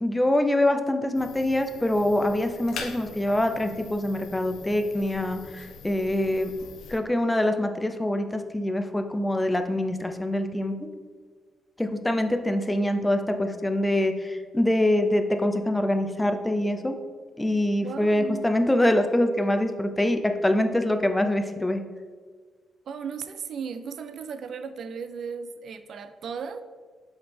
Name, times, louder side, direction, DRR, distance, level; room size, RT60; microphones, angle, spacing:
voice 1, 0.0-6.5 6.9-10.8 11.8-17.0 17.4-21.8, left 1 dB, 10° left, 7 dB, 0.5 m, -24 dB
sound 1, 1.2-7.0, left 5 dB, 90° left, 0.6 m, -43 dB
voice 2, 17.8-18.5 22.9-26.6, right 6 dB, 65° right, 10 dB, 0.4 m, -36 dB
6.9 x 4.0 x 3.4 m, 1.5 s
cardioid pair, 85°, 0 cm